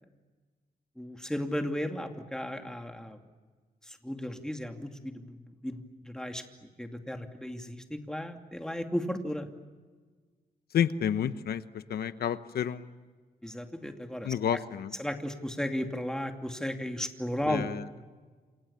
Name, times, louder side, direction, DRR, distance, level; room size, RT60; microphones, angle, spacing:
voice 1, 1.0-3.2 3.8-6.4 6.8-9.5 13.4-14.6 15.0-17.7, equal, 5° left, 4 dB, 2.6 m, -35 dB
voice 2, 10.7-13.0 14.2-14.9 17.5-17.8, left 9 dB, 90° left, 12 dB, 1.0 m, -30 dB
28.0 x 28.0 x 7.1 m, 1.4 s
wide cardioid pair, 120°, 16 cm